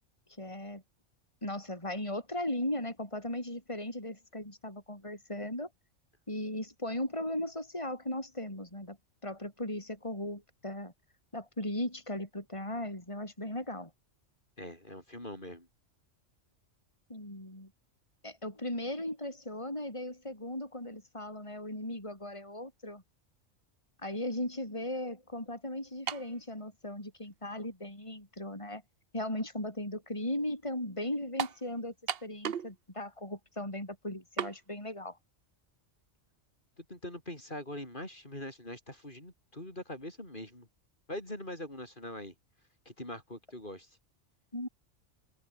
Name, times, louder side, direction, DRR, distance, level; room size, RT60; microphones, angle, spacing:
voice 1, 0.4-0.8 1.4-5.7 6.3-9.0 9.2-10.9 11.3-13.9 17.1-17.7 18.2-23.0 24.0-28.8 29.1-31.9 32.2-35.2 44.5-44.7, left 1 dB, 25° left, 6.0 m, -37 dB
voice 2, 14.6-15.7 36.8-40.7 41.1-42.3 42.8-43.9, left 1 dB, 40° left, 6.6 m, -43 dB
sound 1, 26.1-26.4 27.2-27.3 31.4-31.6 32.1-32.7 33.0-33.1 34.4-34.6, right 8 dB, 55° right, 1.0 m, -34 dB
open air
omnidirectional pair, 1.3 m